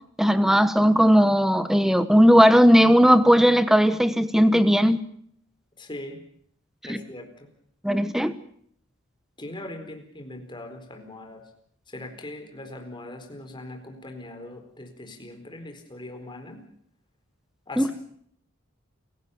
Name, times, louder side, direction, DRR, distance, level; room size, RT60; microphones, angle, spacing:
voice 1, 0.2-5.0 6.9-7.0 7.8-8.3 17.8-17.9, equal, ahead, 12 dB, 1.2 m, -17 dB
voice 2, 5.8-6.2 6.9-7.5 9.4-11.4 11.9-16.6 17.7-17.9, left 1 dB, 25° left, 5 dB, 4.3 m, -40 dB
29.0 x 17.0 x 7.1 m, 0.66 s
head